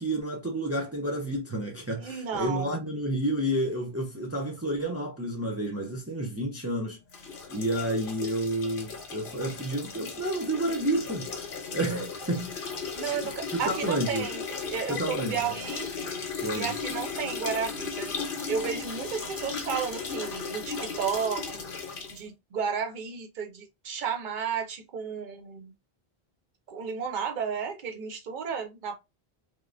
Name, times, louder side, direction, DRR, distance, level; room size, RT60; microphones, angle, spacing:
voice 1, 0.0-7.0 7.5-11.3 11.7-13.1 13.5-14.3 14.9-15.5 16.4-16.7, right 1 dB, 20° right, 0.4 m, -30 dB
voice 2, 2.0-2.7 12.9-15.9 16.5-18.1 18.5-21.6 22.1-25.7 26.7-29.0, right 6 dB, 55° right, 0.8 m, -33 dB
sound 1, 7.1-22.2, left 5 dB, 65° left, 0.9 m, -36 dB
3.1 x 2.1 x 2.4 m
omnidirectional pair, 1.0 m